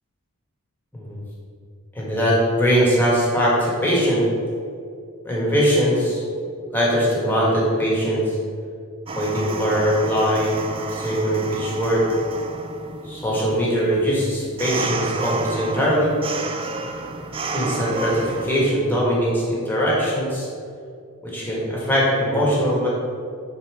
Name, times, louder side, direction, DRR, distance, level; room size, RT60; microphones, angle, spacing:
voice 1, 1.9-4.3 5.2-6.2 6.7-8.4 9.1-10.6 10.9-12.1 13.0-16.1 17.5-20.5 21.2-22.9, equal, 10° left, -6 dB, 1.8 m, -21 dB
sound 1, 9.1-18.7, right 3 dB, 25° right, 0.4 m, -31 dB
5.5 x 4.4 x 6.3 m, 2.3 s
head